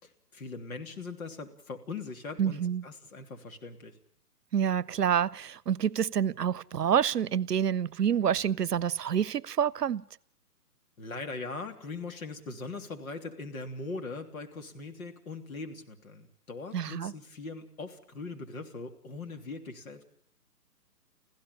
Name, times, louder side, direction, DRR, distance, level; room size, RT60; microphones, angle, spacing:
voice 1, 0.0-3.9 11.0-20.0, left 3 dB, 60° left, 3.3 m, -41 dB
voice 2, 2.4-2.8 4.5-10.0 16.7-17.1, right 8 dB, 80° right, 0.8 m, -28 dB
26.0 x 16.0 x 6.9 m
hypercardioid pair, 145°, 47 cm